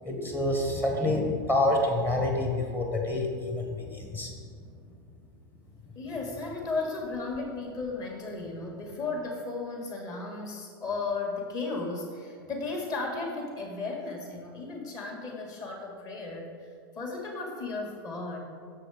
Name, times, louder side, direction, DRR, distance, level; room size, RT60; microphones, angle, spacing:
voice 1, 0.0-4.3, left 1 dB, 15° left, 0 dB, 1.2 m, -27 dB
voice 2, 5.9-16.7 16.9-18.4, left 3 dB, 30° left, 0 dB, 1.8 m, -35 dB
6.8 x 6.3 x 5.0 m, 2.2 s
hypercardioid pair, 130°, 12 cm